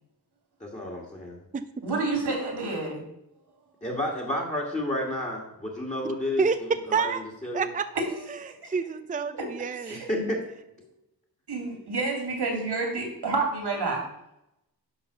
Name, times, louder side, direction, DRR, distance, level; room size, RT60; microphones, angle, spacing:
voice 1, 0.6-1.4 3.8-7.7 9.9-10.4, left 1 dB, 20° left, 0 dB, 1.9 m, -31 dB
voice 2, 1.8-3.0 8.6-8.7 9.8-10.3 11.5-14.1, right 3 dB, 80° right, 0 dB, 2.8 m, -29 dB
voice 3, 6.4-7.2 7.5-7.9 8.3-8.4 8.7-10.0, right 5 dB, 20° right, 11 dB, 0.4 m, -28 dB
11.0 x 4.0 x 6.7 m, 0.84 s
wide cardioid pair, 105°, 39 cm